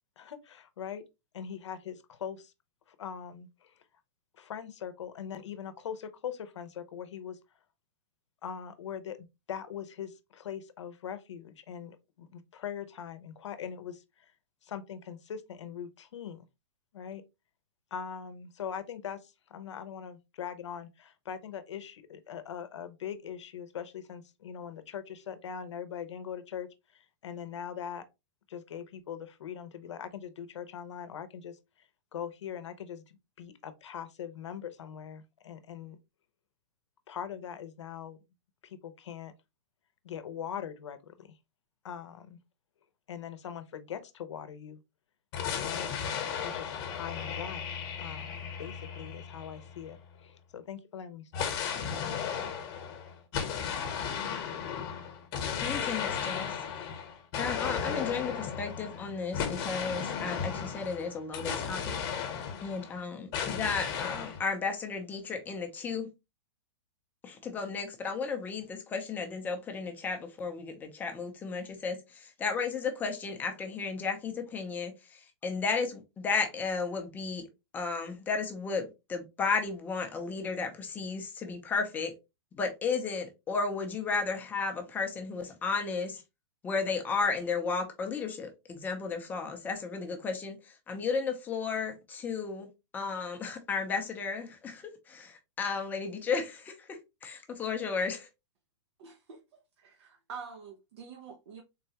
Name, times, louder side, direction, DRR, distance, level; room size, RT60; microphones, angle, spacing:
voice 1, 0.2-1.0 1.3-2.5 2.9-3.7 4.4-7.4 8.4-14.3 14.6-16.4 16.9-17.2 17.9-28.0 28.5-31.9 32.1-36.0 37.1-38.2 38.6-39.3 40.0-41.4 41.8-42.4 43.1-44.8 45.6-45.9 46.4-47.7 48.0-51.5 51.8-52.2, left 8 dB, 85° left, 0.7 m, -41 dB
sound 1, 45.3-50.0 51.3-63.0 63.3-64.4, left 7 dB, 35° left, 1.0 m, -35 dB
voice 2, 55.6-56.6 57.4-62.0 62.6-66.1 67.2-77.5 77.7-82.1 82.5-86.2 86.6-98.3, left 5 dB, 10° left, 0.6 m, -34 dB
voice 3, 99.0-99.4 99.8-101.6, right 6 dB, 65° right, 0.7 m, -46 dB
3.8 x 2.2 x 2.8 m
hypercardioid pair, 155°, 15 cm